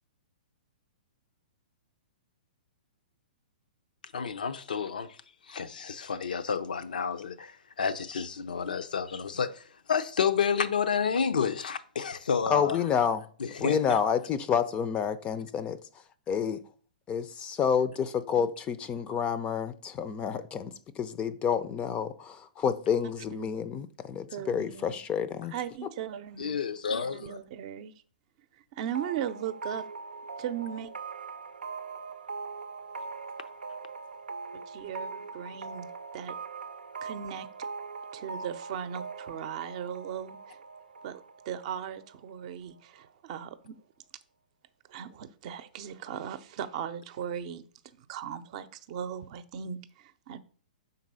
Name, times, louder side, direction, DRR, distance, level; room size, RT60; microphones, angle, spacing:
voice 1, 4.1-5.2 5.5-12.8 13.4-14.0 26.4-27.4, left 6 dB, 70° left, 0.6 m, -30 dB
voice 2, 12.5-13.3 13.6-15.8 16.3-16.6 17.1-25.5, left 7 dB, 25° left, 0.5 m, -29 dB
voice 3, 24.3-25.0 25.5-26.6 27.0-27.9 28.7-29.8 30.4-30.9 34.7-35.9 36.1-36.3 37.0-37.5 38.1-40.6 41.0-41.2 41.5-43.7 44.9-47.6 48.0-50.4, right 9 dB, 45° right, 0.6 m, -38 dB
sound 1, 28.9-42.5, right 4 dB, 85° right, 0.5 m, -41 dB
5.9 x 4.0 x 5.5 m
figure-of-eight pair, 115°, 5 cm